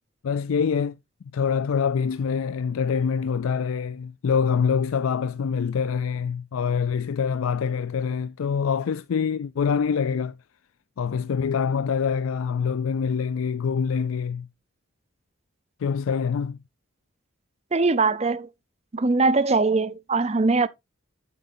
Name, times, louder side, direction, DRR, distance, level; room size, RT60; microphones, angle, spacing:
voice 1, 0.2-1.0 1.3-10.4 11.0-14.5 15.8-16.6, left 6 dB, 80° left, 0.4 m, -25 dB
voice 2, 17.7-18.5 18.9-20.7, right 3 dB, 30° right, 0.6 m, -21 dB
9.2 x 7.8 x 2.6 m
head